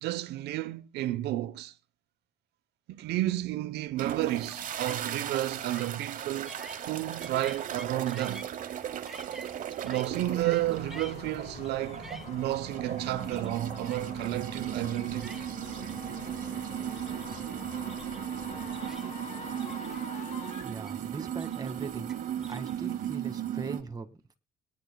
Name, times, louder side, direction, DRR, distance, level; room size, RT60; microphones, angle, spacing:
voice 1, 0.0-1.7 2.9-6.5 6.9-8.4 9.8-15.4, right 15 dB, 80° right, 1.0 m, -32 dB
sound 1, 4.0-23.8, right 10 dB, 50° right, 1.1 m, -37 dB
sound 2, 4.2-23.2, right 1 dB, ahead, 1.7 m, -52 dB
sound 3, 10.1-20.6, left 4 dB, 45° left, 6.0 m, -45 dB
voice 2, 20.6-22.1 22.5-24.4, right 4 dB, 20° right, 2.0 m, -40 dB
22.5 x 10.5 x 2.3 m
cardioid pair, 110°, 17 cm